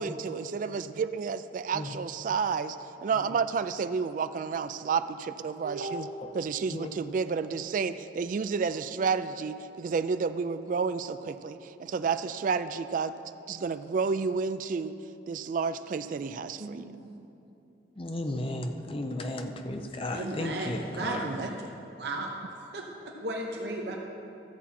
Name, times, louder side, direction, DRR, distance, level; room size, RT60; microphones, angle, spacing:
voice 1, 0.0-2.8 3.0-6.1 6.3-13.1 13.5-14.9 15.3-16.9 21.2-21.5, right 5 dB, 45° right, 11 dB, 0.3 m, -30 dB
voice 2, 5.6-6.1 16.6-17.2 20.1-21.5 22.0-22.3 22.7-24.0, right 2 dB, 65° right, 0 dB, 0.9 m, -35 dB
voice 3, 18.0-21.3, left 1 dB, 30° left, 5 dB, 0.6 m, -34 dB
13.5 x 7.1 x 4.2 m, 2.8 s
head